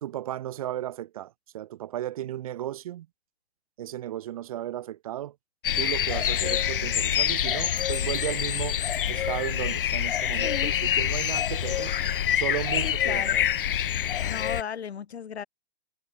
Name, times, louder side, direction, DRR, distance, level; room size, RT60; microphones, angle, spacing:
voice 1, 0.0-3.1 3.8-5.3 5.8-8.8 9.1-11.9 12.3-13.4, right 12 dB, 35° right, 1.2 m, -34 dB
sound 1, 5.6-14.6, left 10 dB, 55° left, 0.8 m, -26 dB
sound 2, 7.6-10.2, right 9 dB, 50° right, 6.6 m, -58 dB
voice 2, 12.8-13.5 14.2-15.4, left 7 dB, 90° left, 1.6 m, -35 dB
hypercardioid pair, 165°, 31 cm